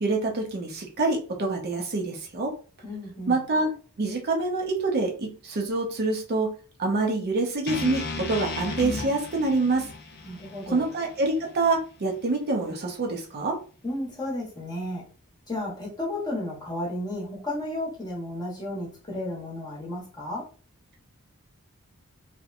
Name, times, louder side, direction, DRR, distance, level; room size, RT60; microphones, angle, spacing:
voice 1, 0.0-2.5 3.3-3.7 4.0-6.5 6.8-9.9 10.7-13.6, right 3 dB, 45° right, 1 dB, 0.5 m, -26 dB
voice 2, 2.8-3.4 10.2-10.9 13.8-15.0 15.5-20.5, left 1 dB, 20° left, -4 dB, 0.9 m, -33 dB
sound 1, 7.7-11.8, left 3 dB, 45° left, 0.4 m, -35 dB
2.7 x 2.1 x 2.5 m, 0.39 s
head